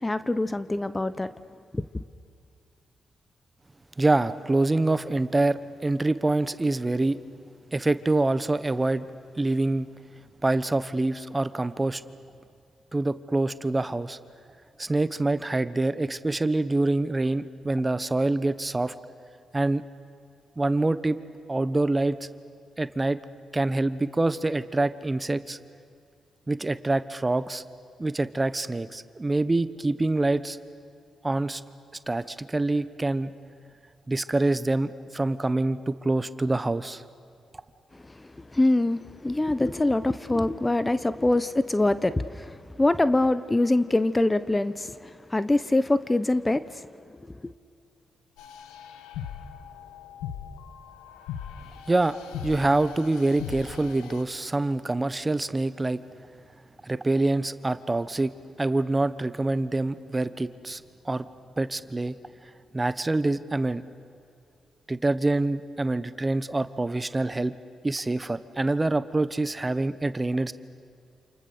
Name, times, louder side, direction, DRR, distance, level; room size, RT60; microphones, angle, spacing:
voice 1, 0.0-1.3 1.7-2.0 37.9-46.9 47.3-47.5, left 2 dB, 20° left, 1.0 m, -24 dB
voice 2, 4.0-7.2 7.7-9.0 9.4-9.9 10.4-12.0 12.9-14.2 14.8-18.9 19.5-19.8 20.6-21.2 21.5-22.2 22.8-23.2 23.5-25.6 26.5-27.6 28.0-30.6 31.2-31.6 32.1-33.3 34.1-37.0 51.9-52.2 52.4-56.0 56.8-58.3 58.6-61.3 61.6-62.2 62.7-63.8 64.9-67.5 67.8-70.5, right 2 dB, 25° right, 1.1 m, -25 dB
sound 1, 48.4-54.2, left 8 dB, 85° left, 1.2 m, -40 dB
28.5 x 28.5 x 6.8 m
hypercardioid pair, 45°, 0 cm